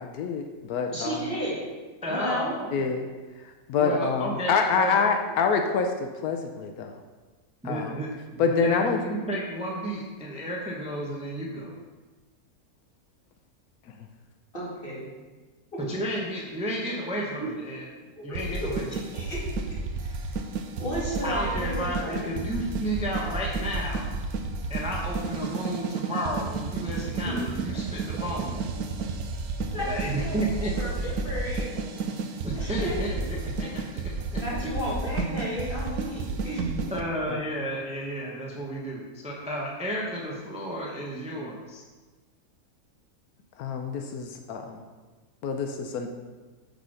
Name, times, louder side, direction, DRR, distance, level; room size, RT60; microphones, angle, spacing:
voice 1, 0.0-1.2 2.7-3.0 3.7-7.0 7.6-7.9 8.4-9.0 37.3-37.4 43.6-44.8 45.4-46.1, left 5 dB, 85° left, 4 dB, 1.1 m, -26 dB
voice 2, 0.9-1.6 2.0-2.6 14.5-15.0 17.4-17.5 18.2-18.6 19.1-19.4 20.0-20.3 20.8-22.3 27.2-27.4 29.7-29.9 30.2-30.4 30.7-31.7 32.6-33.2 33.6-33.7 34.4-36.9, equal, 35° left, -8 dB, 2.7 m, -33 dB
voice 3, 2.0-2.9 3.8-5.0 7.6-11.7 15.9-17.9 18.2-18.9 21.2-24.1 24.7-28.6 29.8-30.9 32.4-33.8 34.3-34.7 36.9-41.8, equal, 5° right, -3 dB, 0.8 m, -32 dB
sound 1, 18.3-37.0, right 3 dB, 90° right, 1.1 m, -32 dB
6.6 x 4.1 x 6.3 m, 1.3 s
omnidirectional pair, 1.6 m